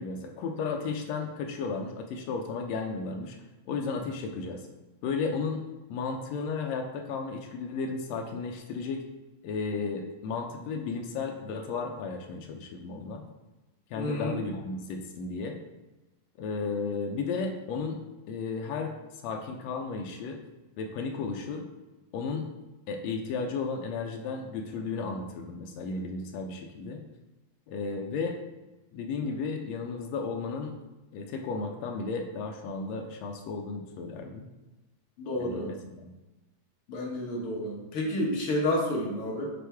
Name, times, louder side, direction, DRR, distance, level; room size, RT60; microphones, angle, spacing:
voice 1, 0.0-3.4 3.7-4.6 5.0-5.6 5.9-9.0 9.4-13.2 13.9-15.6 16.4-18.0 18.3-18.9 19.2-20.4 20.8-21.6 22.1-22.4 22.9-27.0 27.7-28.4 28.9-30.7 31.1-34.5 35.4-36.1, left 4 dB, 85° left, 3 dB, 1.5 m, -34 dB
voice 2, 14.0-14.3 35.2-35.7 36.9-39.5, left 1 dB, 60° left, -3 dB, 1.5 m, -30 dB
6.3 x 5.1 x 3.4 m, 1.1 s
omnidirectional pair, 3.6 m